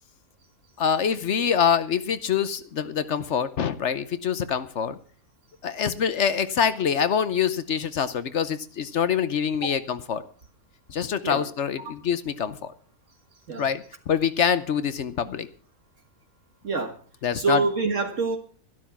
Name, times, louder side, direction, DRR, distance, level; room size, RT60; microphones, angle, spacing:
voice 1, 0.8-5.0 5.6-10.2 10.9-12.7 13.6-15.5 17.2-17.6, left 7 dB, 60° left, 13 dB, 1.0 m, -25 dB
voice 2, 16.6-17.0 17.4-18.4, right 4 dB, 60° right, 5 dB, 1.9 m, -26 dB
12.5 x 12.0 x 5.8 m, 0.42 s
omnidirectional pair, 1.5 m